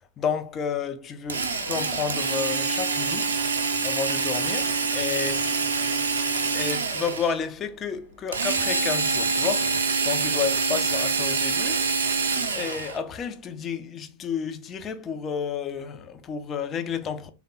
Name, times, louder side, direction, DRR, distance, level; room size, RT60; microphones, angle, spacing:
voice 1, 0.2-3.4 3.8-5.5 6.5-11.9 12.5-17.3, left 7 dB, 25° left, 0.4 m, -31 dB
Drill, 1.3-7.4 8.3-13.0, right 4 dB, 70° right, 0.5 m, -26 dB
3.4 x 2.1 x 3.8 m
figure-of-eight pair, 90°, 0 cm